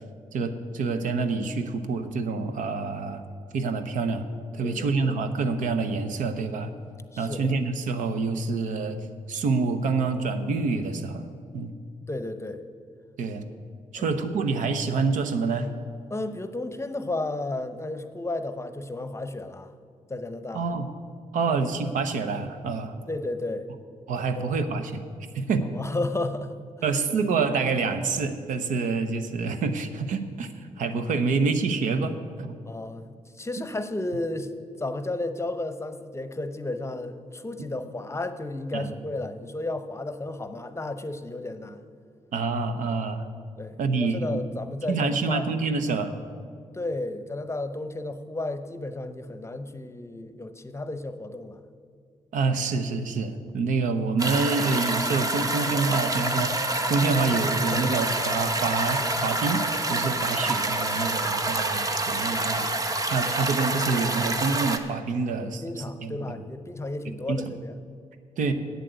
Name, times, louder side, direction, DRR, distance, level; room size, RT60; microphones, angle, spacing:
voice 1, 0.3-3.2 3.5-4.3 4.5-6.7 7.2-9.0 9.3-11.3 11.5-11.7 13.2-13.5 13.9-15.7 20.5-20.9 21.3-22.9 24.1-25.0 25.3-25.7 26.8-32.6 38.7-38.9 42.3-43.2 43.8-44.4 44.9-46.1 52.3-62.7 63.1-66.2 67.3-67.4 68.4-68.5, right 4 dB, 85° right, 9 dB, 0.7 m, -27 dB
voice 2, 4.6-5.1 7.1-7.6 12.1-12.6 13.9-14.1 16.1-19.7 20.1-20.6 21.5-21.6 23.1-23.7 24.3-24.6 25.7-26.6 32.6-34.5 34.8-41.8 43.6-45.5 46.7-51.6 60.2-60.4 65.3-67.8, left 2 dB, 20° left, 10 dB, 0.7 m, -33 dB
sound 1, 54.2-64.8, right 2 dB, 25° right, 0.9 m, -27 dB
8.3 x 7.5 x 8.1 m, 2.2 s
cardioid pair, 65°, 13 cm